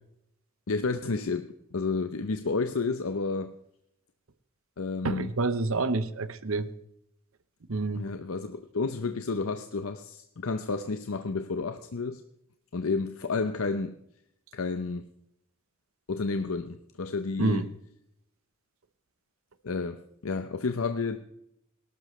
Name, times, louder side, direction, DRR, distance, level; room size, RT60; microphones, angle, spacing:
voice 1, 0.7-3.5 4.8-5.3 7.9-12.2 12.7-14.0 14.5-15.1 16.1-17.7 19.6-21.2, left 4 dB, 85° left, 0.7 m, -31 dB
voice 2, 5.0-6.7 7.7-8.1 17.4-17.7, right 3 dB, 80° right, 0.9 m, -28 dB
18.5 x 12.0 x 3.2 m
head